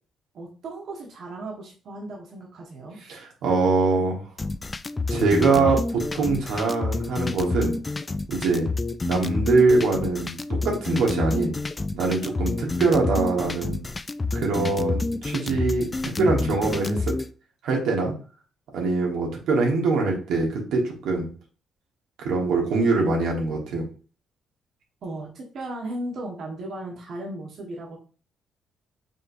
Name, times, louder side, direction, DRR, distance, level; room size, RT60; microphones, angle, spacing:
voice 1, 0.3-3.0 25.0-28.0, right 1 dB, 65° right, -2 dB, 1.3 m, -36 dB
voice 2, 3.1-4.2 5.1-7.8 8.3-8.7 9.0-11.5 11.9-13.8 14.3-17.1 17.6-18.1 18.7-21.3 22.2-23.8, right 3 dB, 80° right, -1 dB, 1.5 m, -23 dB
sound 1, 4.4-17.3, left 3 dB, 25° left, 0.3 m, -28 dB
5.4 x 3.1 x 2.7 m, 0.38 s
cardioid pair, 90°, 0 cm